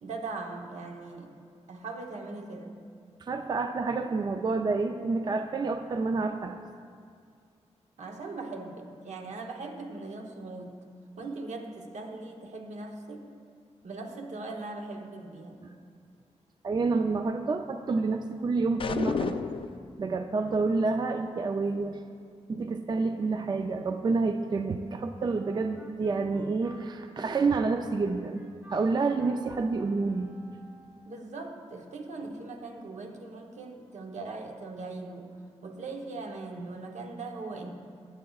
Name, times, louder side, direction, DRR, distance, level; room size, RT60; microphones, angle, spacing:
voice 1, 0.0-1.3 1.7-2.8 8.0-10.7 11.2-13.3 13.8-15.6 31.1-35.3 35.6-37.7, right 3 dB, 75° right, 3 dB, 1.0 m, -40 dB
voice 2, 3.2-6.6 16.6-19.4 20.0-22.0 22.5-28.4 28.7-30.3, right 3 dB, 35° right, 6 dB, 0.4 m, -28 dB
sound 1, 18.8-19.8, left 5 dB, 50° left, 0.4 m, -30 dB
Wind instrument woodwind instrument, 25.2-31.2, equal, 20° right, 1.4 m, -54 dB
14.5 x 9.2 x 2.4 m, 2.2 s
wide cardioid pair, 100°, 12 cm